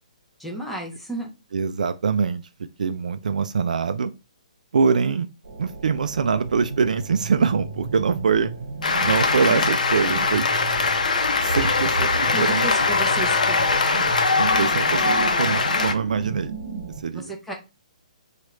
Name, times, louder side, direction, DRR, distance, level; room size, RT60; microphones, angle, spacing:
voice 1, 0.4-1.3 12.0-13.7 17.1-17.5, right 2 dB, ahead, 0.4 m, -33 dB
voice 2, 1.5-2.4 2.8-4.1 4.7-5.3 5.6-8.5 9.0-10.5 11.4-12.7 14.4-16.6 17.0-17.3, right 5 dB, 75° right, 0.3 m, -23 dB
sound 1, 5.4-17.0, right 4 dB, 55° right, 0.9 m, -33 dB
Cheering / Applause, 8.8-15.9, left 4 dB, 85° left, 0.6 m, -21 dB
3.1 x 2.4 x 3.0 m
hypercardioid pair, 180°, 4 cm